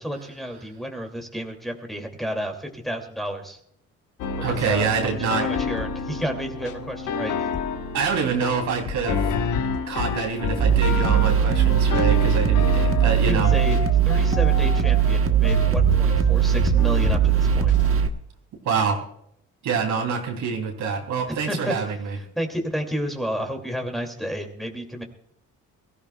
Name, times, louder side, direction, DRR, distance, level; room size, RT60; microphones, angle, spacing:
voice 1, 0.0-3.6 4.4-7.3 13.3-13.8 14.1-17.7 21.5-25.0, equal, ahead, 2 dB, 2.5 m, -31 dB
sound 1, 4.2-17.9, left 5 dB, 85° left, 1.3 m, -28 dB
voice 2, 4.4-5.5 7.9-9.3 9.9-13.5 18.6-19.0 19.6-22.1, right 6 dB, 75° right, 2 dB, 3.1 m, -26 dB
sound 2, 10.6-18.1, right 9 dB, 45° right, 1.3 m, -20 dB
22.5 x 14.5 x 2.3 m, 0.70 s
cardioid pair, 90°, 30 cm